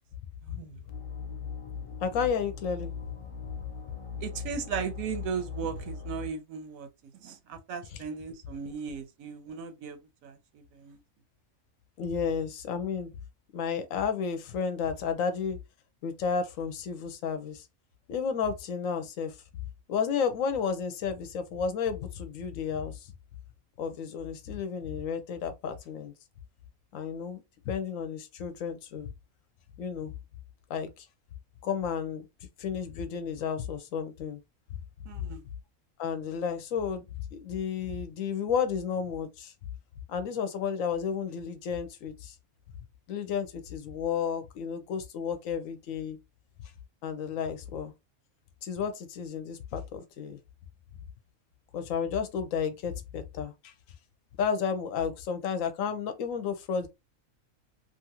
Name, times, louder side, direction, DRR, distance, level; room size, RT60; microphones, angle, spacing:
voice 1, 0.4-0.8 4.2-11.0 35.1-35.4, right 6 dB, 75° right, 1.0 m, -37 dB
sound 1, 0.9-6.3, left 6 dB, 35° left, 0.6 m, -39 dB
voice 2, 2.0-2.9 12.0-13.1 13.5-15.6 16.0-17.7 18.1-19.4 19.9-23.1 23.8-26.1 26.9-29.1 29.8-30.1 30.7-31.1 31.6-32.3 32.6-34.4 36.0-37.0 37.3-39.5 40.1-42.3 43.1-46.2 47.0-47.9 48.6-50.4 51.7-53.7 54.4-56.9, left 6 dB, 75° left, 0.9 m, -32 dB
2.9 x 2.4 x 2.8 m
omnidirectional pair, 1.5 m